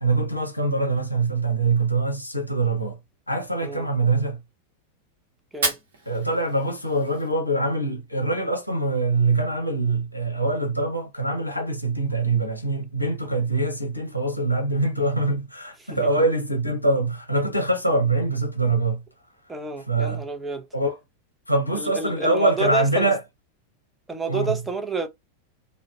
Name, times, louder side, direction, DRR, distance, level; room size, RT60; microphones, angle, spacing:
voice 1, 0.0-3.0 3.3-4.4 6.1-19.0 19.9-20.2 20.7-21.0 21.5-23.2 24.3-24.5, right 2 dB, 85° left, 0.6 m, -24 dB
Fire, 5.5-7.5, right 3 dB, 65° right, 0.9 m, -32 dB
voice 2, 15.8-16.2 19.5-20.7 21.7-23.1 24.1-25.1, right 4 dB, 10° right, 0.5 m, -29 dB
2.5 x 2.2 x 2.2 m
figure-of-eight pair, 90°, 0 cm